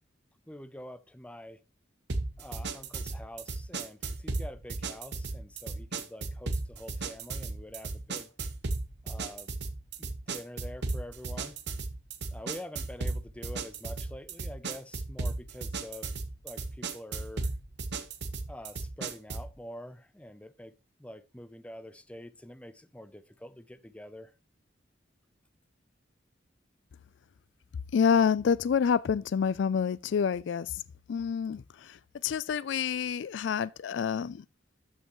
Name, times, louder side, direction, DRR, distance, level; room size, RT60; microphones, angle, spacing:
voice 1, 0.5-1.6 2.4-8.3 9.0-9.5 10.0-11.6 12.3-16.1 16.4-17.5 18.5-20.7 21.0-24.3, left 1 dB, 5° left, 0.5 m, -46 dB
sound 1, 2.1-19.5, right 3 dB, 65° right, 0.9 m, -36 dB
voice 2, 27.9-30.7 31.1-31.6 32.2-34.4, left 7 dB, 75° left, 0.4 m, -27 dB
13.0 x 5.6 x 3.0 m
head